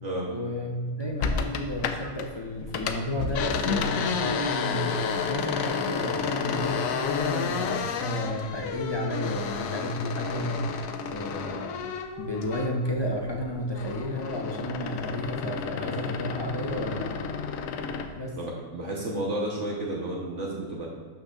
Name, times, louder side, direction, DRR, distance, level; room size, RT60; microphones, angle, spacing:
voice 1, 0.2-5.0 5.3-11.8 12.2-17.1 18.2-18.4, left 1 dB, 30° left, -1 dB, 0.5 m, -32 dB
sound 1, 1.2-2.3 2.6-12.9 13.3-18.1, left 5 dB, 85° left, 1.0 m, -31 dB
voice 2, 18.4-20.9, right 1 dB, 65° right, -3 dB, 1.3 m, -32 dB
12.0 x 6.2 x 2.4 m, 1.5 s
omnidirectional pair, 1.4 m